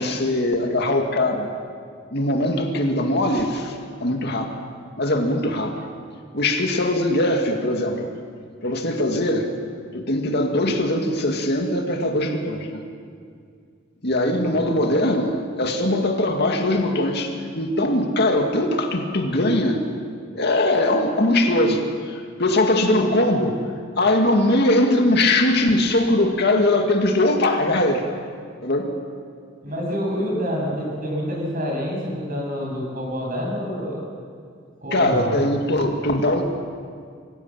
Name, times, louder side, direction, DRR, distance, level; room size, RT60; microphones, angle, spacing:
voice 1, 0.0-1.5 2.1-3.8 4.0-4.5 5.0-5.7 6.3-8.1 8.6-9.5 9.9-12.8 14.0-19.8 20.3-23.6 24.0-28.0 28.6-28.9 34.9-36.4, left 1 dB, 60° left, 3 dB, 2.3 m, -21 dB
voice 2, 29.6-34.1 34.8-35.3, equal, 45° right, -2 dB, 7.6 m, -27 dB
24.5 x 16.5 x 7.6 m, 2.2 s
head